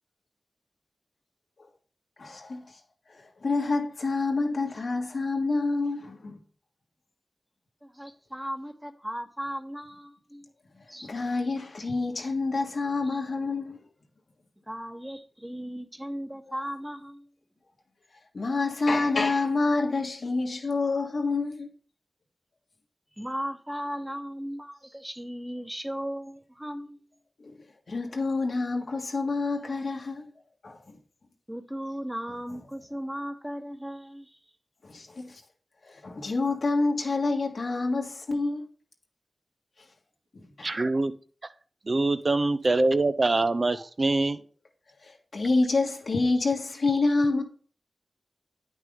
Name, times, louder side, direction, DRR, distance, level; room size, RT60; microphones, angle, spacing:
voice 1, 2.2-2.8 3.1-6.4 10.8-13.8 18.3-21.7 27.4-27.5 27.9-30.3 30.6-31.0 34.8-35.4 35.8-38.7 40.3-40.7 45.0-47.4, left 3 dB, 75° left, 1.6 m, -28 dB
voice 2, 7.8-10.5 10.9-11.1 13.1-13.2 14.7-17.2 23.2-27.0 31.5-34.4, equal, 10° right, 1.2 m, -36 dB
voice 3, 40.6-41.1 41.9-44.4, right 2 dB, 55° right, 0.6 m, -24 dB
9.2 x 6.0 x 3.7 m
cardioid pair, 45°, 0 cm